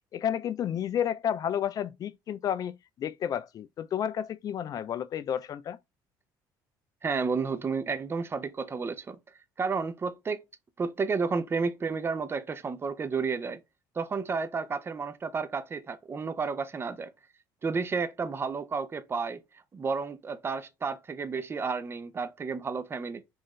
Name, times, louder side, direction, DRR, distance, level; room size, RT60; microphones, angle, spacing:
voice 1, 0.1-5.8, left 9 dB, 45° left, 0.3 m, -31 dB
voice 2, 7.0-9.2 9.6-10.4 10.8-13.6 14.0-17.1 17.6-19.4 19.7-23.2, right 5 dB, 30° right, 0.6 m, -31 dB
3.7 x 2.5 x 3.1 m
supercardioid pair, 90°, 9 cm